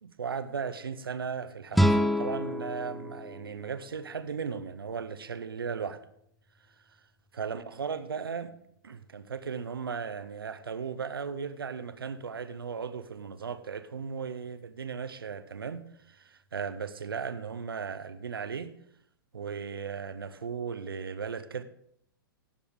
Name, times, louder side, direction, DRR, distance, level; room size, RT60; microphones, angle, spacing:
voice 1, 0.0-6.0 7.3-8.5 8.8-18.7 19.3-21.6, right 6 dB, 80° right, 0.7 m, -36 dB
sound 1, 1.7-4.8, equal, ahead, 0.4 m, -28 dB
17.5 x 7.0 x 3.5 m
figure-of-eight pair, 105°, 12 cm